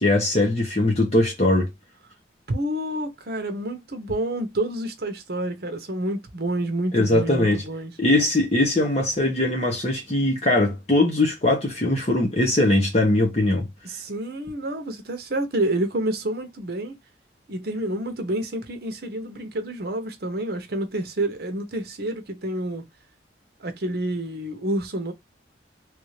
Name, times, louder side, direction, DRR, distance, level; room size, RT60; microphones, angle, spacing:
voice 1, 0.0-1.7 6.9-7.6 8.0-13.7, left 1 dB, 35° left, 1.1 m, -21 dB
voice 2, 2.5-7.9 13.8-16.9 17.5-22.8 23.6-25.1, right 1 dB, 55° right, 0.9 m, -28 dB
3.2 x 2.7 x 3.1 m
head